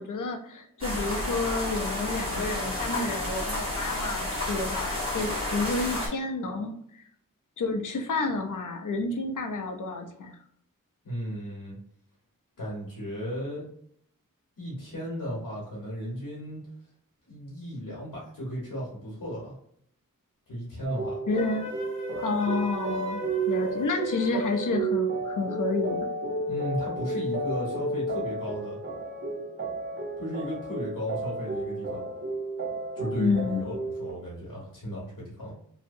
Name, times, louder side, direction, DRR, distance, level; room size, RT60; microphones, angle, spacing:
voice 1, 0.0-7.0 7.6-10.4 21.3-21.7 22.2-26.1 33.2-33.7, left 3 dB, 65° left, 4 dB, 0.5 m, -30 dB
sound 1, 0.8-6.1, left 1 dB, 15° right, 1.2 m, -31 dB
voice 2, 11.0-11.8 12.6-13.6 14.6-16.6 17.3-19.5 20.5-21.2 26.5-28.8 30.2-32.0 32.9-35.5, equal, 85° left, -6 dB, 1.0 m, -35 dB
sound 2, 20.8-34.1, right 2 dB, 35° right, 0.6 m, -32 dB
Wind instrument woodwind instrument, 21.3-24.8, equal, 20° left, 0.7 m, -39 dB
2.7 x 2.0 x 2.5 m, 0.68 s
wide cardioid pair, 60°, 33 cm